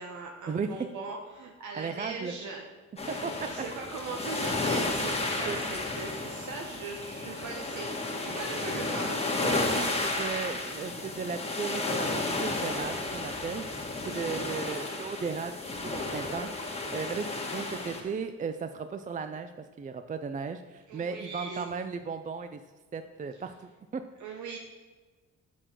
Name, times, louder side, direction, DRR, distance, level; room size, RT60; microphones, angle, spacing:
voice 1, 0.0-2.7 3.4-9.2 10.5-10.7 14.0-14.5 20.9-21.7 24.2-24.6, right 4 dB, 75° right, 1 dB, 1.0 m, -40 dB
voice 2, 1.7-2.3 3.1-3.5 5.5-5.6 9.3-16.5 16.9-19.5 19.8-22.6 22.9-24.0, right 5 dB, 25° right, 9 dB, 0.4 m, -36 dB
sound 1, 3.0-18.0, left 2 dB, 20° left, 1.8 m, -32 dB
6.8 x 6.3 x 6.0 m, 1.3 s
cardioid pair, 90°, 30 cm